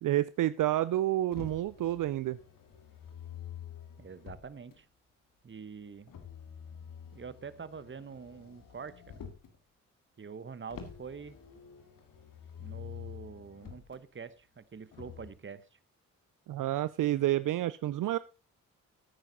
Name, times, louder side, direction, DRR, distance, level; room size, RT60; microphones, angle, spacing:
voice 1, 0.0-2.4 16.5-18.2, right 14 dB, 70° right, 17 dB, 0.5 m, -29 dB
Motor vehicle (road), 1.3-4.8 6.1-9.6 10.7-14.0 14.9-15.3, left 8 dB, 75° left, 1.9 m, -48 dB
voice 2, 4.0-4.9 5.4-6.1 7.1-9.2 10.2-11.4 12.6-15.8, right 5 dB, 35° right, 17 dB, 1.0 m, -45 dB
11.5 x 9.0 x 4.0 m, 0.30 s
supercardioid pair, 45°, 34 cm